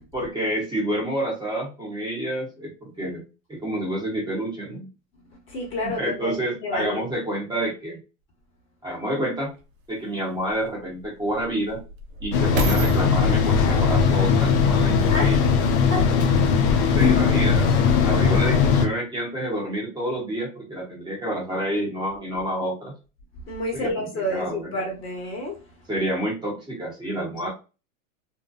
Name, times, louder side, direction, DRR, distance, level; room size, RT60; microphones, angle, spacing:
voice 1, 0.1-3.2 3.6-4.9 5.8-8.0 8.8-9.5 9.9-11.8 12.2-15.5 16.9-17.8 18.0-22.9 23.7-24.7 25.9-27.5, right 1 dB, 10° right, 0.9 m, -28 dB
voice 2, 5.5-7.0 15.1-15.3 23.5-25.6, left 1 dB, 30° left, 1.2 m, -30 dB
sound 1, 9.5-9.6 10.4-15.7 16.3-16.4, right 2 dB, 85° right, 0.7 m, -33 dB
sound 2, 12.3-18.9, left 6 dB, 60° left, 0.7 m, -19 dB
2.7 x 2.1 x 2.4 m
hypercardioid pair, 115°, 39 cm